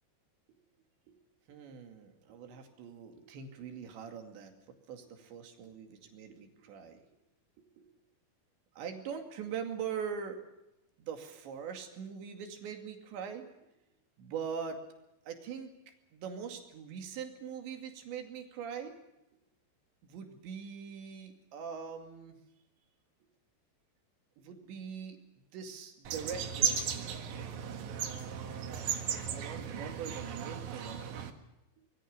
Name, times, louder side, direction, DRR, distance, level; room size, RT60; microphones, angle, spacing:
voice 1, 1.5-7.0 7.6-7.9 8.8-10.4 11.0-13.4 14.2-14.8 15.3-15.7 16.1-18.9 20.0-22.4 24.4-25.2 25.5-27.2 27.9-31.3, right 7 dB, 80° right, 5 dB, 4.6 m, -42 dB
sound 1, 26.0-31.3, right 7 dB, 55° right, 2.5 m, -36 dB
25.0 x 21.5 x 6.8 m, 0.90 s
omnidirectional pair, 5.1 m